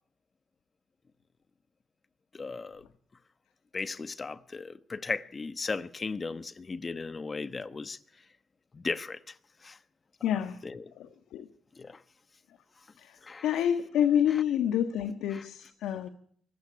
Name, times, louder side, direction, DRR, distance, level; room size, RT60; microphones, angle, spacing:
voice 1, 2.3-2.8 3.7-8.0 8.7-9.2 9.6-9.8 10.6-10.8 11.8-12.0 13.2-13.5 15.3-15.4, left 4 dB, 30° left, 1.2 m, -36 dB
voice 2, 10.2-10.6 11.0-11.5 13.0-16.1, left 9 dB, 85° left, 1.6 m, -28 dB
24.5 x 15.5 x 9.8 m
cardioid pair, 90°, 0 cm